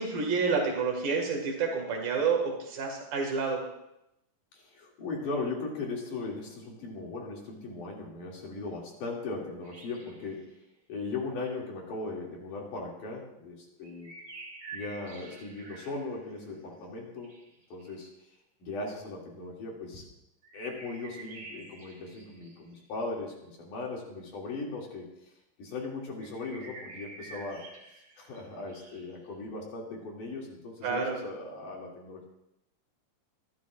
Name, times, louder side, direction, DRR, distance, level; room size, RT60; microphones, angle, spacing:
voice 1, 0.0-3.6 30.8-31.2, right 5 dB, 85° right, 1 dB, 3.8 m, -29 dB
voice 2, 4.5-10.5 10.9-14.1 14.7-17.3 17.7-18.1 18.6-20.0 20.5-25.1 25.6-27.6 28.2-32.3, left 3 dB, 65° left, -2 dB, 4.0 m, -38 dB
sound 1, 9.6-10.4 13.8-16.6 17.2-18.0 20.4-23.1 26.2-29.3, right 3 dB, 40° right, 2.6 m, -48 dB
25.0 x 12.0 x 2.5 m, 0.85 s
omnidirectional pair, 4.0 m